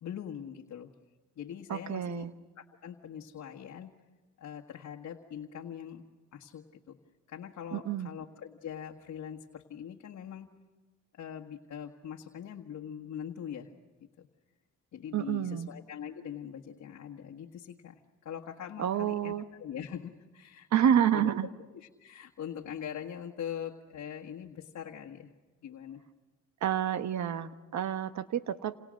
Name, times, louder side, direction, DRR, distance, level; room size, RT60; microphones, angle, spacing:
voice 1, 0.0-0.9 1.4-2.3 2.6-3.9 4.4-6.1 6.3-7.0 7.3-10.5 11.1-13.7 14.0-14.3 14.9-20.7 21.1-21.4 21.7-25.3 25.6-26.0, left 9 dB, 65° left, 0 dB, 1.7 m, -42 dB
voice 2, 1.7-2.3 7.7-8.1 15.1-15.7 18.8-19.4 20.7-21.5 26.6-28.8, right 9 dB, 65° right, 11 dB, 1.2 m, -29 dB
28.5 x 27.5 x 6.5 m, 1.3 s
cardioid pair, 90°, 30 cm